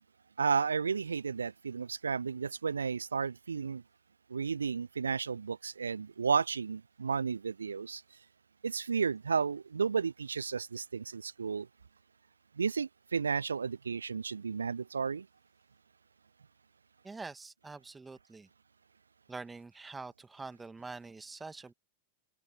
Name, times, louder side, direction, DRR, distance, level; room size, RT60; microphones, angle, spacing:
voice 1, 0.4-3.8 4.3-8.0 8.6-11.7 12.6-15.3, right 5 dB, 75° right, 0.8 m, -33 dB
voice 2, 17.0-18.5 19.3-21.7, right 3 dB, 10° right, 2.2 m, -45 dB
figure-of-eight pair, 90°, 0 cm